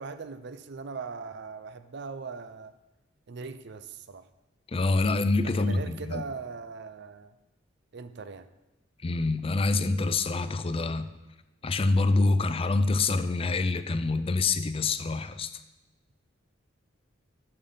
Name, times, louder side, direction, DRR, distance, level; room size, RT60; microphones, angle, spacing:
voice 1, 0.0-2.8 3.3-4.3 5.4-7.3 7.9-8.5, right 4 dB, 60° right, 12 dB, 0.5 m, -40 dB
voice 2, 4.7-6.2 9.0-11.1 11.6-15.5, left 3 dB, 30° left, 12 dB, 0.4 m, -26 dB
8.8 x 6.9 x 5.6 m, 1.0 s
head